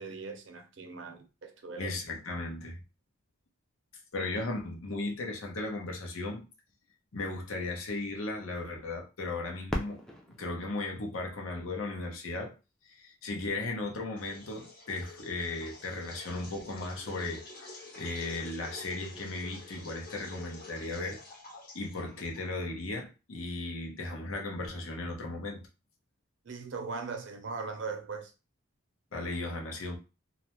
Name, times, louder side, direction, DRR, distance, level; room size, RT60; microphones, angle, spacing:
voice 1, 0.0-2.0 26.4-28.3, right 4 dB, 60° right, 0.5 m, -39 dB
voice 2, 1.8-2.8 4.1-6.4 7.1-10.0 10.4-12.5 12.9-21.2 21.7-25.6 29.1-30.0, left 2 dB, 80° left, 0.7 m, -36 dB
Fireworks, 9.7-12.4 13.1-13.2 13.9-14.4 16.3-16.4, equal, 5° left, 0.3 m, -40 dB
sound 1, 14.2-22.7, left 3 dB, 45° left, 0.9 m, -48 dB
2.3 x 2.1 x 2.9 m
head